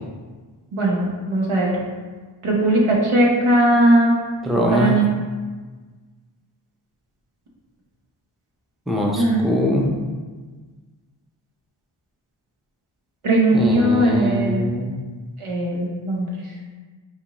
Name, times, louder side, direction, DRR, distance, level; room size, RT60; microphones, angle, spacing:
voice 1, 0.7-1.7 2.4-4.2 4.7-5.0 9.2-9.4 13.2-14.6 15.4-16.3, right 1 dB, 85° right, -3 dB, 0.9 m, -18 dB
voice 2, 4.4-5.0 8.9-9.9 13.5-15.0, left 1 dB, ahead, -1 dB, 0.4 m, -22 dB
4.3 x 2.5 x 2.9 m, 1.4 s
wide cardioid pair, 50°, 48 cm